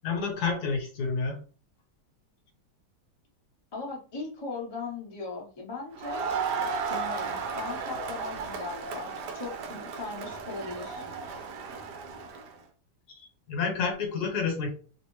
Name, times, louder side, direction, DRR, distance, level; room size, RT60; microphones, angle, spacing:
voice 1, 0.0-1.4 13.5-14.7, left 5 dB, 65° left, 2 dB, 1.4 m, -29 dB
voice 2, 3.7-6.3 6.9-11.0, left 3 dB, 35° left, -3 dB, 0.4 m, -38 dB
Crowd, 6.0-12.5, right 5 dB, 75° right, 1.2 m, -34 dB
3.1 x 2.6 x 3.0 m, 0.38 s
omnidirectional pair, 1.9 m